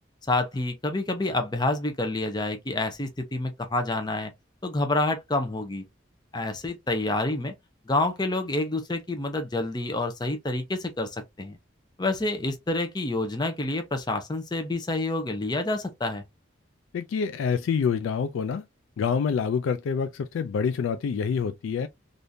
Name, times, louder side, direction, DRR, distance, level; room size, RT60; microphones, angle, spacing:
voice 1, 0.3-4.3 4.6-5.8 6.3-7.5 7.9-11.6 12.0-16.2, left 2 dB, 20° left, 0.5 m, -28 dB
voice 2, 16.9-18.6 19.0-21.9, left 6 dB, 85° left, 0.3 m, -27 dB
3.5 x 2.5 x 2.6 m
head